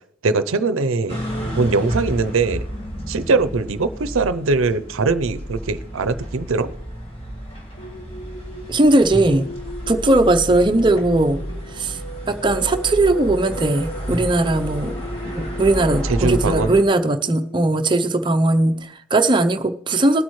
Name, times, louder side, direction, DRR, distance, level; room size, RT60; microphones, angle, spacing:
voice 1, 0.2-1.2 1.6-2.6 3.1-6.7 16.0-16.7, right 3 dB, 80° right, 12 dB, 0.6 m, -21 dB
sound 1, 1.1-16.8, equal, 30° left, 1.9 m, -31 dB
sound 2, 7.8-18.8, equal, 50° left, 1.3 m, -36 dB
voice 2, 8.7-9.5 9.9-11.4 11.7-12.0 12.3-14.9 15.2-20.2, right 2 dB, 25° right, 7 dB, 0.6 m, -18 dB
20.0 x 8.7 x 3.2 m, 0.69 s
head